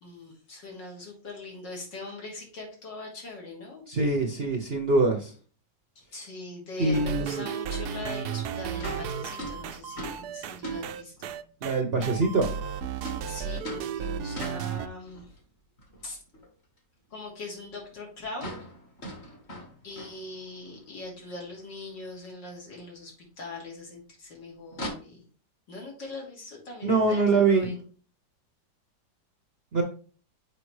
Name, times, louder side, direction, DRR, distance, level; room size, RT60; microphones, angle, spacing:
voice 1, 0.0-3.8 6.0-11.3 13.3-15.3 16.0-16.2 17.1-18.5 19.8-25.2 25.7-27.7, left 2 dB, 70° left, -1 dB, 3.1 m, -41 dB
voice 2, 3.9-5.3 6.8-7.4 11.6-12.5 26.8-27.7 29.7-29.8, right 3 dB, 45° right, 3 dB, 0.8 m, -24 dB
sound 1, 6.9-14.9, right 7 dB, 70° right, 1.0 m, -34 dB
sound 2, 8.8-11.5 13.0-15.4 15.8-16.5 16.8-16.9 17.3-17.4 17.6-17.7 17.9-18.0 18.3-20.7 21.1-21.2 21.5-21.6 22.8-22.9 24.7-24.9, equal, 35° left, 1.7 m, -41 dB
6.7 x 5.1 x 3.2 m, 0.39 s
omnidirectional pair, 2.0 m